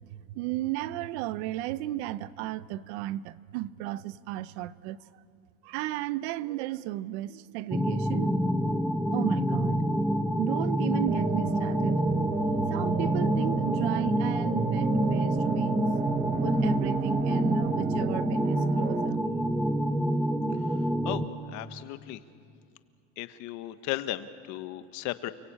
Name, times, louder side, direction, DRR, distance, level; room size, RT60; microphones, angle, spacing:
voice 1, 0.1-5.0 5.6-8.4 9.1-12.0 12.7-15.9 16.4-19.2, right 15 dB, 80° right, 0.8 m, -34 dB
sound 1, 7.7-21.3, equal, ahead, 0.9 m, -27 dB
sound 2, 11.1-19.1, right 9 dB, 30° right, 0.8 m, -33 dB
voice 2, 21.5-22.2 23.2-25.3, left 15 dB, 60° left, 1.2 m, -35 dB
29.5 x 21.5 x 8.7 m
cardioid pair, 155°, 33 cm